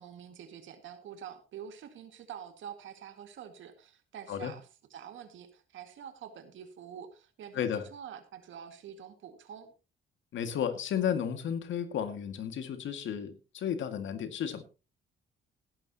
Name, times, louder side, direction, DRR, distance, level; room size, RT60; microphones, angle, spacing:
voice 1, 0.0-9.7, right 8 dB, 75° right, 8 dB, 2.0 m, -47 dB
voice 2, 7.5-7.8 10.3-14.6, left 8 dB, 75° left, 9 dB, 2.0 m, -33 dB
17.0 x 11.5 x 2.9 m, 0.31 s
cardioid pair, 90°, 20 cm